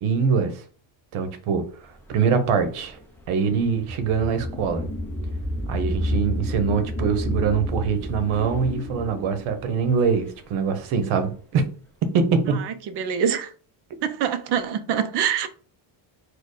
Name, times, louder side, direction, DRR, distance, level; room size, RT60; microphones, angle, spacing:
voice 1, 0.0-0.6 1.1-3.0 3.3-4.9 5.7-11.6 12.1-12.6, right 6 dB, 80° right, 0.9 m, -23 dB
sound 1, 2.0-11.0, left 1 dB, 5° left, 0.3 m, -31 dB
voice 2, 13.0-13.5 14.0-15.5, right 8 dB, 55° right, 0.6 m, -24 dB
4.4 x 2.3 x 4.7 m
cardioid pair, 170°, 49 cm